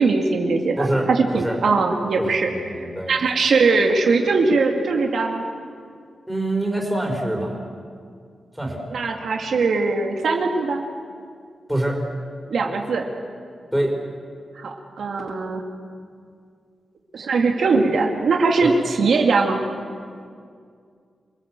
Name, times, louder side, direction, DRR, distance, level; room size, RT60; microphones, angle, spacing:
voice 1, 0.0-5.4 8.9-10.8 12.5-13.1 14.5-15.6 17.1-19.6, right 4 dB, 75° right, 2 dB, 2.3 m, -21 dB
voice 2, 0.8-1.6 2.2-2.3 2.5-3.2 6.3-7.6 8.6-8.8 11.7-12.0 13.7-13.9 18.6-18.7, right 1 dB, ahead, 0 dB, 4.5 m, -25 dB
28.0 x 19.5 x 7.6 m, 2.2 s
wide cardioid pair, 125°, 0 cm